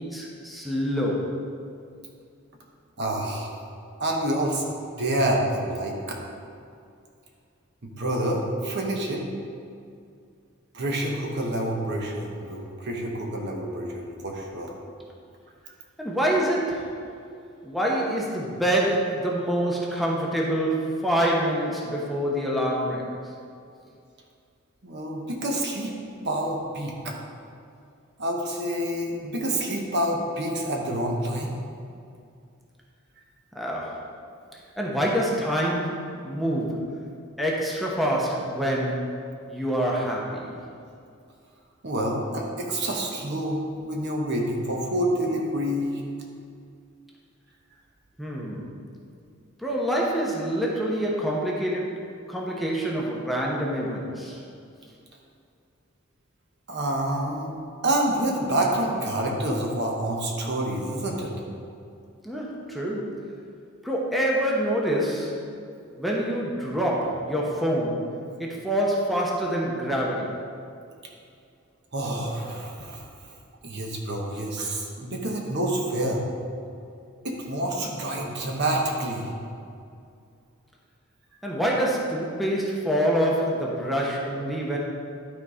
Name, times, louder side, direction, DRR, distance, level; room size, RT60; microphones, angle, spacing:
voice 1, 0.0-1.3 16.0-16.9 17.6-23.2 33.5-34.0 34.8-36.9 37.4-39.1 39.5-40.6 48.2-48.8 49.6-54.4 62.2-63.3 63.8-65.4 66.0-68.1 68.4-70.4 81.4-84.8, equal, ahead, -4 dB, 0.9 m, -26 dB
voice 2, 3.0-3.5 4.0-4.6 5.0-6.2 7.8-9.2 10.7-14.7 15.6-15.7 24.8-25.9 26.2-27.1 28.2-31.5 41.8-46.0 56.7-57.6 57.8-61.3 71.9-73.0 73.6-76.2 77.2-79.3, right 1 dB, 55° right, 0 dB, 1.2 m, -28 dB
11.5 x 4.1 x 5.0 m, 2.4 s
head